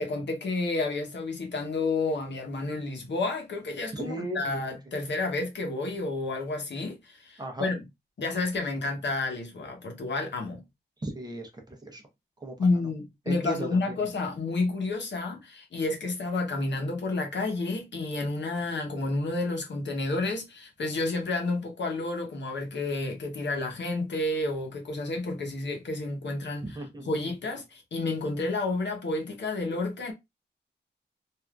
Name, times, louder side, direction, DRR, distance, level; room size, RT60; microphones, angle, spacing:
voice 1, 0.0-7.8 8.2-10.6 12.6-26.8 27.0-30.1, left 3 dB, 75° left, 0.9 m, -30 dB
voice 2, 3.9-4.4 7.4-7.7 11.0-12.0 12.4-12.5 13.3-14.0 26.6-27.3, right 1 dB, 20° right, 0.7 m, -36 dB
3.4 x 2.5 x 2.3 m
wide cardioid pair, 165°, 18 cm